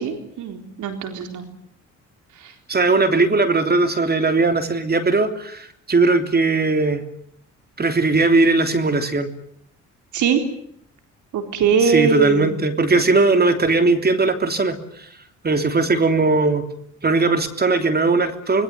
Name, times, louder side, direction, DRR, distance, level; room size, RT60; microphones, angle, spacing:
voice 1, 0.0-1.5 2.4-2.5 10.1-10.4 11.3-12.5, right 6 dB, 75° right, 6 dB, 4.0 m, -21 dB
voice 2, 2.7-7.0 7.8-9.3 11.8-14.8 15.4-16.7 17.0-18.6, right 3 dB, 30° right, 8 dB, 3.3 m, -18 dB
26.0 x 21.5 x 9.5 m, 0.68 s
cardioid pair, 90°, 30 cm